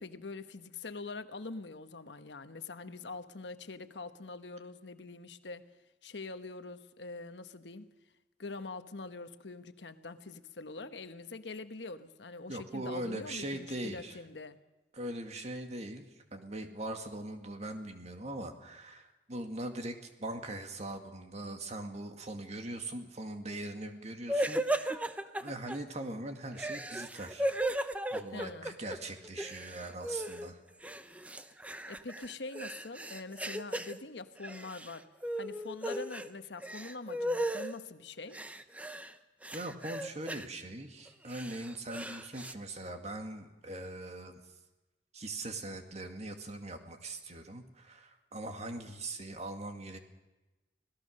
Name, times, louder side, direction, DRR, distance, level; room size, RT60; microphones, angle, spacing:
voice 1, 0.0-5.6 6.0-7.9 8.4-14.6 28.3-28.8 31.9-35.1 35.4-38.4, left 3 dB, 85° left, 10 dB, 1.1 m, -44 dB
voice 2, 12.5-14.2 14.9-25.1 25.3-30.6 39.5-44.4 45.1-50.0, right 1 dB, 40° right, 6 dB, 2.1 m, -41 dB
sound 1, 24.3-25.8 26.5-29.0 29.2-30.5 30.8-34.0 34.4-34.9 35.2-36.3 36.6-37.7 38.3-39.1 39.4-40.5 41.1-42.5, right 1 dB, 10° right, 0.8 m, -36 dB
25.5 x 17.5 x 6.5 m, 1.1 s
head